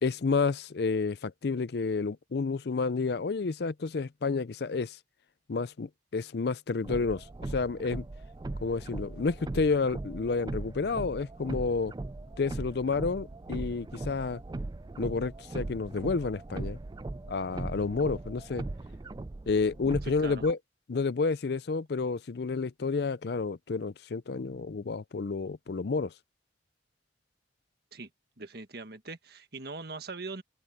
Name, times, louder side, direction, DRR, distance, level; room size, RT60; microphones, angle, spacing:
voice 1, 0.0-5.0 5.5-8.0 8.6-11.9 12.4-14.4 15.0-16.8 17.3-18.6 19.5-20.6 20.9-26.1, left 4 dB, 60° left, 0.5 m, -30 dB
sound 1, 6.8-20.5, right 2 dB, 20° right, 0.3 m, -39 dB
voice 2, 20.0-20.5 27.9-28.1 28.4-30.4, right 3 dB, 55° right, 1.6 m, -41 dB
head